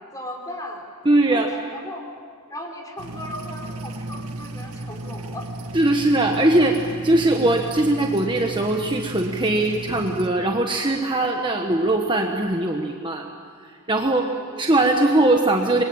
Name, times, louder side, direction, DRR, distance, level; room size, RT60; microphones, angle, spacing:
voice 1, 0.1-0.9 1.3-2.0 2.5-5.5 14.1-14.6, left 1 dB, 15° left, 1 dB, 4.2 m, -37 dB
voice 2, 1.0-1.5 5.7-6.8 7.0-13.2 13.6-14.3 14.6-15.8, right 2 dB, 20° right, 2 dB, 1.4 m, -20 dB
sound 1, 3.0-10.3, right 2 dB, 85° right, 1.9 m, -34 dB
28.0 x 22.0 x 8.9 m, 2.1 s
head